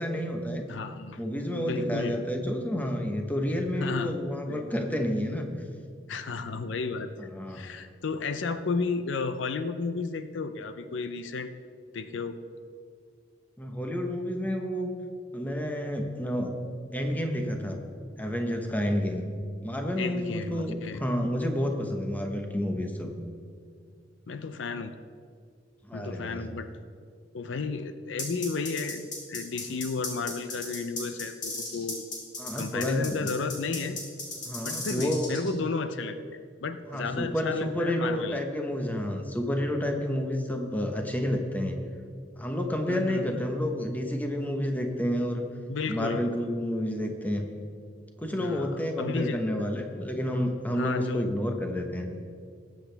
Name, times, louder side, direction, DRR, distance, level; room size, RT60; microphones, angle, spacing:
voice 1, 0.0-0.6 1.2-5.5 7.2-7.7 13.6-14.9 15.3-16.5 16.9-17.8 18.2-19.3 19.6-23.1 25.8-26.5 32.4-33.3 34.4-35.3 36.9-41.8 42.4-45.4 45.9-47.4 48.2-52.1, equal, 10° left, 3 dB, 1.0 m, -30 dB
voice 2, 0.7-1.2 1.5-2.2 3.8-4.1 4.4-4.6 6.1-7.1 7.5-11.5 11.9-12.4 20.0-21.0 24.3-24.9 25.9-26.7 27.3-32.1 32.6-34.0 34.3-38.4 42.9-43.4 45.7-46.3 48.3-49.4 50.8-51.3, left 4 dB, 80° left, 10 dB, 0.6 m, -33 dB
sound 1, 28.2-35.5, left 3 dB, 45° left, 2.8 m, -35 dB
20.0 x 7.9 x 3.4 m, 2.2 s
head